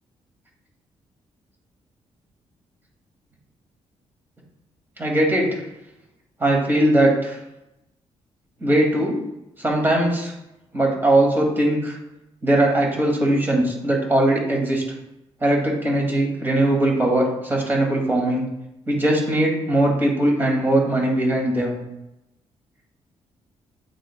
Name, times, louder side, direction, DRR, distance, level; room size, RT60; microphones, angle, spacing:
voice 1, 5.0-5.6 6.4-7.4 8.6-9.2 9.6-10.3 10.7-12.0 12.4-14.8 15.4-18.4 18.9-21.8, right 1 dB, 20° right, -1 dB, 2.3 m, -20 dB
8.8 x 8.7 x 2.3 m, 0.89 s
cardioid pair, 150°, 12 cm